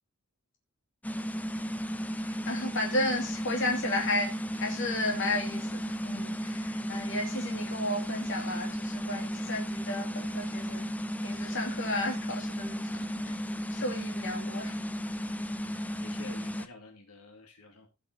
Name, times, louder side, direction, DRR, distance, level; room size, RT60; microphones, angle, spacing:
sound 1, 1.0-16.7, equal, 5° left, 0.6 m, -34 dB
voice 1, 2.2-4.3 4.6-10.9 11.2-13.4 13.7-14.7, left 1 dB, 55° left, 2.7 m, -33 dB
voice 2, 15.5-17.9, left 3 dB, 85° left, 2.5 m, -50 dB
16.5 x 6.1 x 2.9 m
head